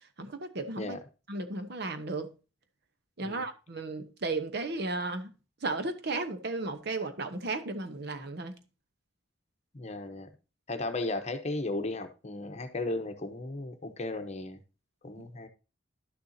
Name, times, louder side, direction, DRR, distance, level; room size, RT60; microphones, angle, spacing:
voice 1, 0.2-1.0 1.3-2.3 3.2-5.3 5.6-8.5 15.2-15.3, right 3 dB, 55° right, 1.0 m, -34 dB
voice 2, 9.7-10.3 10.7-14.6 15.0-15.5, left 2 dB, 35° left, 0.9 m, -35 dB
11.5 x 6.8 x 2.8 m
head